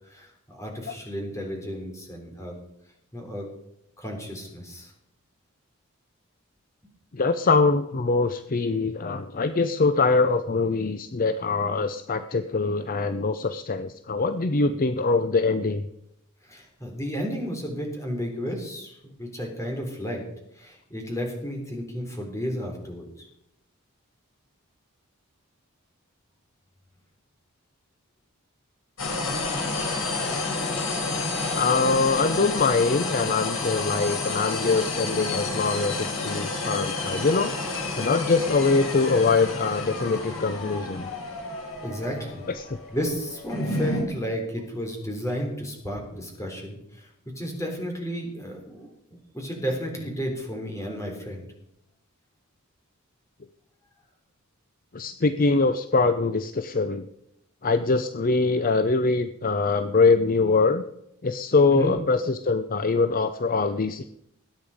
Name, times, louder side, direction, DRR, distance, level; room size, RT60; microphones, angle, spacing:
voice 1, 0.1-2.6 3.1-3.5 4.0-4.9 16.5-20.2 20.5-23.3 41.8-42.5 42.9-47.1 47.4-48.9 49.3-51.5 61.7-61.9, equal, 15° left, 1 dB, 3.7 m, -32 dB
voice 2, 7.1-15.8 31.5-37.5 38.0-41.1 42.5-42.8 54.9-57.1 57.6-60.8 61.2-64.0, left 4 dB, 40° left, 10 dB, 0.6 m, -23 dB
sound 1, 29.0-44.0, left 3 dB, 70° left, 4.1 m, -30 dB
20.5 x 9.4 x 5.0 m, 0.79 s
head